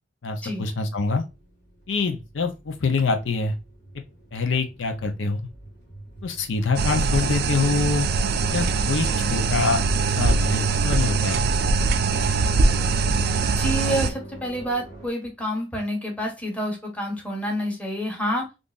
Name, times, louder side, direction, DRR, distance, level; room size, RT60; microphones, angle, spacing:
voice 1, 0.2-1.2 1.9-3.5 4.3-5.5 6.2-8.1 8.5-9.8 10.2-11.4, left 4 dB, 85° left, 0.6 m, -25 dB
sound 1, 1.2-15.1, right 1 dB, 65° left, 1.7 m, -44 dB
sound 2, 6.8-14.1, right 4 dB, 55° right, 0.4 m, -22 dB
voice 2, 13.5-18.6, equal, 10° left, 1.1 m, -28 dB
3.7 x 2.5 x 2.4 m
head